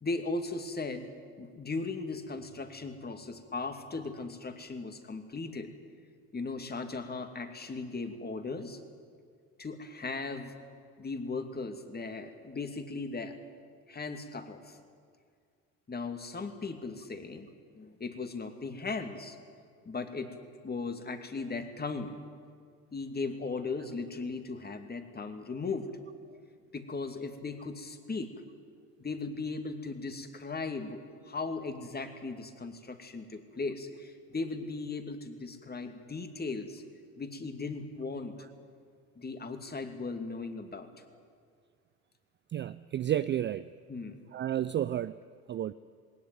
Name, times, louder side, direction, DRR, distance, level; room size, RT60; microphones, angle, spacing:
voice 1, 0.0-1.1 1.4-5.7 6.3-8.8 9.6-10.6 11.0-13.4 13.9-14.8 15.9-17.5 17.8-19.4 19.9-20.3 20.6-22.2 22.9-25.9 26.7-28.3 29.0-36.8 37.2-38.3 39.2-40.9 43.9-44.2, left 3 dB, 20° left, 7 dB, 2.6 m, -37 dB
voice 2, 42.5-43.7 44.3-45.2 45.5-45.7, right 11 dB, 25° right, 14 dB, 0.5 m, -31 dB
20.5 x 19.0 x 9.3 m, 2.2 s
hypercardioid pair, 70°, 45 cm